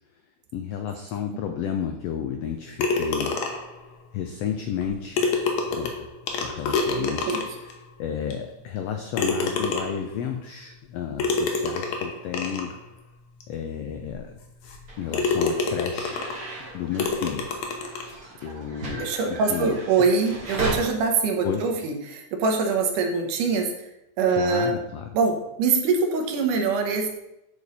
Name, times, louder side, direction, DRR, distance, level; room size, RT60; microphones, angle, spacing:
voice 1, 0.5-3.4 4.1-5.4 5.7-12.7 13.5-14.4 15.0-16.2 16.7-17.5 18.4-20.0 21.4-21.6 24.3-25.1, left 8 dB, 85° left, 5 dB, 1.4 m, -32 dB
sound 1, 2.8-3.8 4.8-4.9 5.2-7.7 8.3-8.4 9.1-10.1 11.2-12.7 13.4-13.5 14.0-14.1 14.6-14.8 15.1-16.4 17.0-18.1, left 4 dB, 70° left, 2.1 m, -27 dB
sound 2, 14.9-20.7, right 3 dB, 35° right, 1.8 m, -37 dB
voice 2, 19.0-23.7 24.2-24.8 25.1-27.1, right 4 dB, 80° right, 3 dB, 2.6 m, -23 dB
9.7 x 5.0 x 4.1 m, 0.88 s
omnidirectional pair, 3.6 m